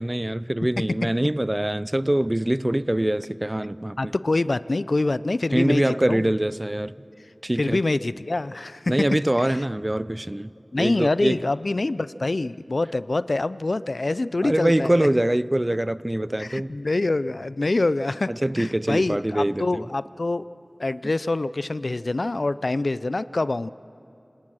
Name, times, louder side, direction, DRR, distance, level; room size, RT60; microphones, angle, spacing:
voice 1, 0.0-4.1 5.5-6.9 7.4-7.8 8.9-10.5 10.8-11.5 14.4-16.8 18.3-19.8, right 1 dB, 25° right, 0.5 m, -24 dB
voice 2, 4.0-6.3 7.6-8.9 10.7-15.1 16.4-18.3 18.6-20.4 20.8-23.7, left 2 dB, 75° left, 0.4 m, -25 dB
27.0 x 18.5 x 6.3 m
wide cardioid pair, 50°, 0 cm